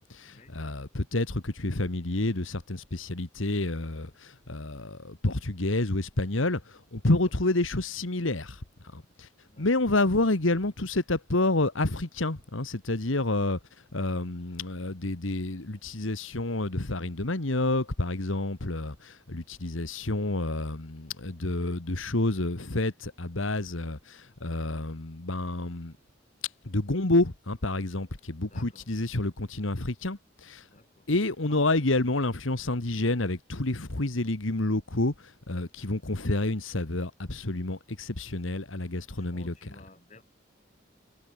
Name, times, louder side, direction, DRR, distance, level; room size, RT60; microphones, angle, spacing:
voice 1, 0.0-8.6 8.9-9.3 9.6-13.6 13.9-25.9 26.7-30.6 31.1-39.8, left 2 dB, 85° left, 1.9 m, -29 dB
voice 2, 28.5-28.9 30.7-31.0 31.5-31.6 35.8-35.9 38.8-40.2, left 2 dB, 35° left, 2.9 m, -54 dB
head